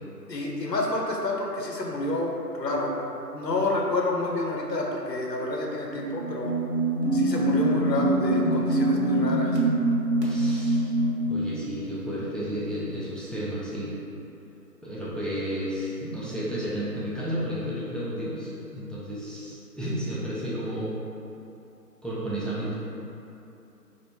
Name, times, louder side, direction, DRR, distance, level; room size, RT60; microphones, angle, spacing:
voice 1, 0.3-6.5 7.1-9.6, left 1 dB, 80° left, -1 dB, 0.7 m, -29 dB
sound 1, 6.0-11.3, right 1 dB, 75° right, 1.0 m, -24 dB
voice 2, 10.2-10.9 11.2-13.9 14.8-20.9 22.0-22.7, equal, ahead, -9 dB, 0.4 m, -32 dB
3.3 x 2.5 x 3.0 m, 2.9 s
figure-of-eight pair, 165°, 49 cm